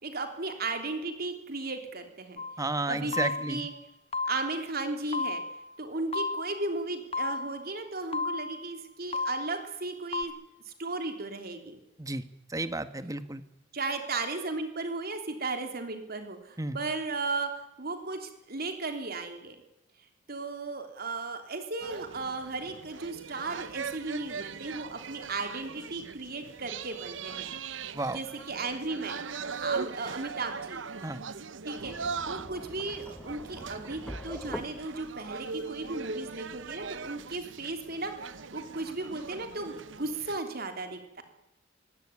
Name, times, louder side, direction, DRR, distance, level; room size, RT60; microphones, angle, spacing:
voice 1, 0.0-2.4 2.9-3.7 4.3-5.4 5.8-10.3 10.7-11.8 13.7-19.6 20.3-29.2 29.6-30.9 31.6-41.2, right 3 dB, 55° right, 6 dB, 3.4 m, -35 dB
sound 1, 2.4-2.7 3.1-3.7 4.1-4.7 5.1-5.7 6.1-6.7 7.1-7.7 8.1-8.7 9.1-9.7 10.1-10.2, left 3 dB, 30° left, 1.5 m, -33 dB
voice 2, 2.6-3.7 12.0-12.2 12.5-13.4 16.6-16.8 27.9-28.2 31.0-31.2, right 2 dB, 20° right, 11 dB, 1.5 m, -32 dB
sound 2, 21.8-40.4, right 5 dB, 75° right, 0.9 m, -40 dB
sound 3, 31.8-37.4, equal, 5° left, 1.5 m, -45 dB
23.5 x 17.5 x 9.7 m, 0.89 s
head